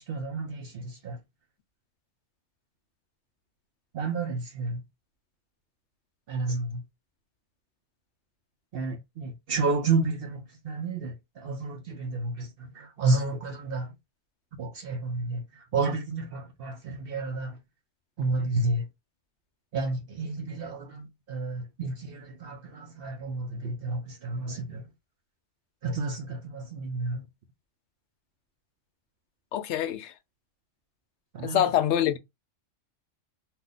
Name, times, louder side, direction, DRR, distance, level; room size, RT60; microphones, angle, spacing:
voice 1, 0.1-1.2 3.9-4.8 6.3-6.8 8.7-10.4 10.6-12.5 12.8-13.9 14.6-15.4 15.7-17.5 18.2-18.8 19.7-24.8 25.8-27.2 31.3-31.6, right 3 dB, 60° right, 0.7 m, -30 dB
voice 2, 29.5-30.1 31.4-32.2, left 10 dB, 70° left, 0.8 m, -25 dB
2.4 x 2.2 x 3.8 m
omnidirectional pair, 1.3 m